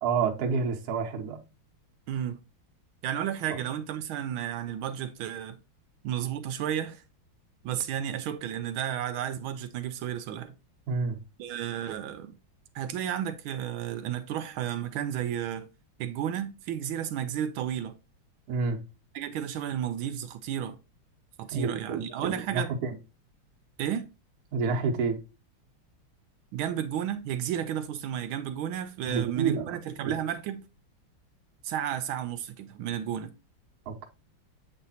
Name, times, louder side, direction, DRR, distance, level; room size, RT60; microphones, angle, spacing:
voice 1, 0.0-1.4 3.5-3.6 10.9-11.2 18.5-18.8 21.5-23.0 24.5-25.2 29.0-29.8 30.0-30.1 33.9-34.1, right 5 dB, 55° right, 1.3 m, -29 dB
voice 2, 2.1-2.4 3.0-5.6 6.0-7.0 7.6-10.5 11.4-12.3 12.7-15.7 16.0-17.9 19.1-20.8 21.4-22.7 23.8-24.1 26.5-30.6 31.6-33.3, right 10 dB, 80° right, 1.4 m, -32 dB
7.9 x 3.3 x 4.0 m
omnidirectional pair, 2.2 m